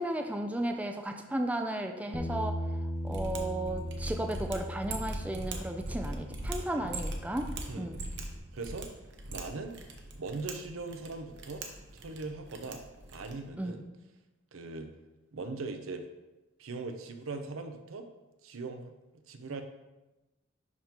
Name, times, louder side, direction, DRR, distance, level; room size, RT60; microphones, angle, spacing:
voice 1, 0.0-2.6 3.0-7.5 7.8-8.0 13.6-13.8, right 1 dB, 5° right, 4 dB, 0.4 m, -34 dB
Bass guitar, 2.1-8.4, equal, 15° left, 0.7 m, -39 dB
Mechanisms, 3.0-13.5, right 2 dB, 60° right, 0.8 m, -41 dB
voice 2, 7.7-8.0 8.5-8.9 9.3-9.8 10.1-11.6 11.9-12.8 13.1-13.9 14.5-14.9 15.3-16.0 16.6-18.1 18.4-18.9 19.3-19.6, right 3 dB, 90° right, 6 dB, 0.6 m, -40 dB
10.5 x 3.6 x 2.9 m, 1.0 s
head